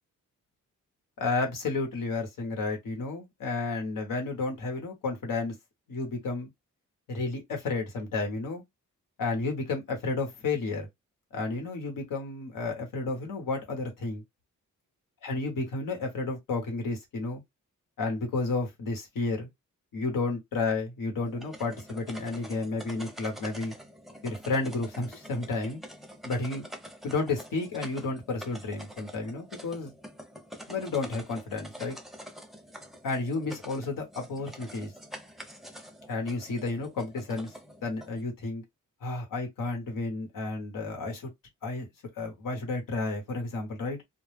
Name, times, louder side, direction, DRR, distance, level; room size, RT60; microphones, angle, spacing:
voice 1, 1.2-5.5 5.9-6.5 7.1-8.6 9.2-10.9 11.3-14.2 15.2-17.4 18.0-19.5 19.9-23.7 24.2-25.8 26.2-26.6 27.0-29.9 30.7-32.0 33.0-34.9 36.1-37.5 37.8-38.6 39.0-41.3 41.6-41.9 42.2-44.0, left 3 dB, 85° left, 1.0 m, -32 dB
sound 1, 21.2-38.2, equal, ahead, 0.6 m, -46 dB
2.2 x 2.1 x 3.2 m
cardioid pair, 70°, 32 cm